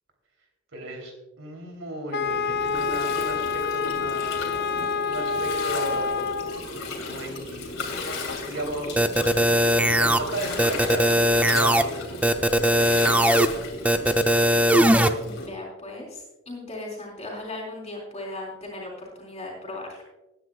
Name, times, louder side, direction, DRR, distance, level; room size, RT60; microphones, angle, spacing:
voice 1, 0.7-4.5 4.8-6.4 7.1-8.0 8.4-12.1 12.5-13.2, right 1 dB, 75° right, 3 dB, 3.2 m, -35 dB
Wind instrument woodwind instrument, 2.1-6.7, left 5 dB, 55° left, 0.6 m, -27 dB
Gurgling, 2.2-15.5, left 2 dB, 75° left, 2.6 m, -35 dB
sound 1, 9.0-10.2 10.6-11.8 12.2-13.5 13.8-15.1, right 1 dB, 5° right, 0.5 m, -19 dB
voice 2, 15.2-20.0, left 2 dB, 30° left, -6 dB, 3.6 m, -37 dB
20.0 x 9.8 x 2.3 m, 1.0 s
head